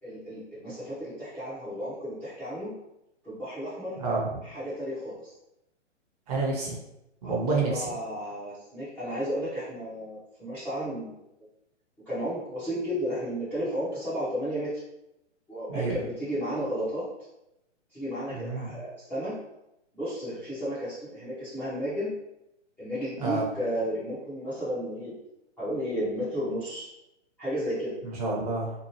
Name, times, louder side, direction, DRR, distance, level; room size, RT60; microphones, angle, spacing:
voice 1, 0.0-2.7 3.2-3.9 4.4-5.3 7.2-11.1 12.1-14.7 15.5-17.0 17.9-19.3 19.9-22.1 22.8-25.1 25.6-26.9 27.4-27.9, equal, 5° left, -14 dB, 0.5 m, -33 dB
voice 2, 4.0-4.4 6.3-6.8 7.2-7.9 15.7-16.0 18.3-18.8 23.2-23.5 28.0-28.7, right 3 dB, 30° right, -2 dB, 0.7 m, -29 dB
2.8 x 2.3 x 2.9 m, 0.87 s
figure-of-eight pair, 125°, 36 cm